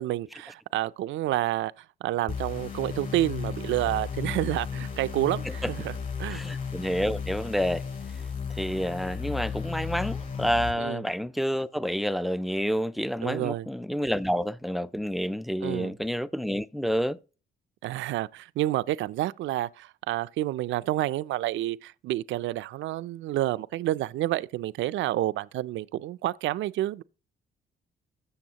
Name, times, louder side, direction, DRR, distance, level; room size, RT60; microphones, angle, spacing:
voice 1, 0.0-6.4 10.8-11.0 13.2-13.7 15.6-15.9 17.8-27.0, right 15 dB, 75° right, 0.4 m, -29 dB
sound 1, 2.3-10.7, left 6 dB, 45° left, 4.7 m, -34 dB
voice 2, 6.3-7.8 8.6-17.2, equal, ahead, 0.4 m, -29 dB
13.5 x 7.1 x 2.9 m
cardioid pair, 90°, 20 cm